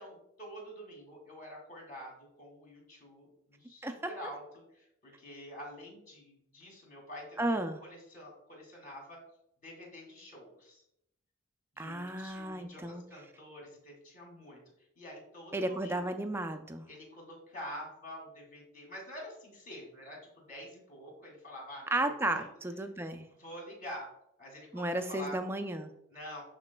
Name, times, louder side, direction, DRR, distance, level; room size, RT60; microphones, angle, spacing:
voice 1, 0.0-9.2 9.6-10.8 11.7-16.2 16.9-22.5 23.4-24.1 24.4-25.4 26.1-26.4, equal, 40° left, -2 dB, 2.5 m, -47 dB
voice 2, 3.8-4.1 7.4-7.8 11.8-13.0 15.5-16.9 21.9-23.3 24.7-25.9, right 1 dB, 10° right, 7 dB, 0.4 m, -33 dB
12.0 x 4.1 x 2.2 m, 0.78 s
head